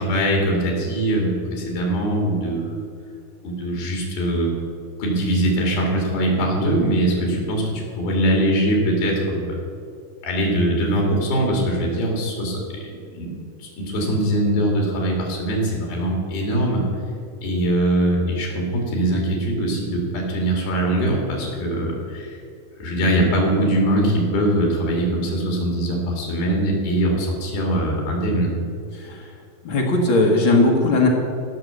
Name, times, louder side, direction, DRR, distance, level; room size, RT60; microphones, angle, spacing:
voice 1, 0.0-2.8 3.4-4.5 5.0-9.6 10.2-13.3 13.6-16.9 17.4-22.4 22.8-28.5, right 1 dB, 80° left, -1 dB, 4.2 m, -22 dB
voice 2, 29.0-29.3 29.6-31.1, left 2 dB, 55° left, -1 dB, 1.4 m, -18 dB
16.5 x 6.1 x 6.7 m, 2.4 s
omnidirectional pair, 4.3 m